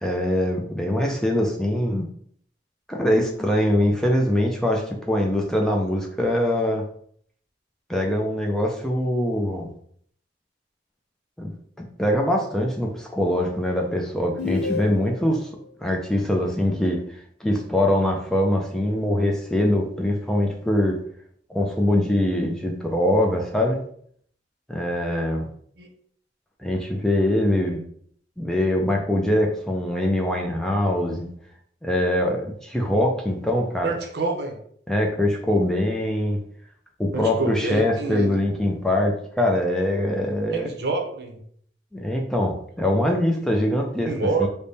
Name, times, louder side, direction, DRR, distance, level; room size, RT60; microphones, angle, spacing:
voice 1, 0.0-2.0 2.9-6.8 7.9-9.7 11.4-11.5 12.0-15.5 15.8-21.0 21.5-23.8 24.7-25.5 26.6-27.8 28.4-31.3 31.8-34.0 34.9-36.4 37.0-40.7 41.9-44.1 44.4-44.5, left 1 dB, 5° left, 0 dB, 0.4 m, -23 dB
sound 1, 14.4-15.4, left 4 dB, 75° left, 0.5 m, -29 dB
voice 2, 33.8-34.6 37.1-38.4 40.5-41.4 44.1-44.5, right 4 dB, 60° right, 3 dB, 0.7 m, -27 dB
3.4 x 2.1 x 4.0 m, 0.63 s
head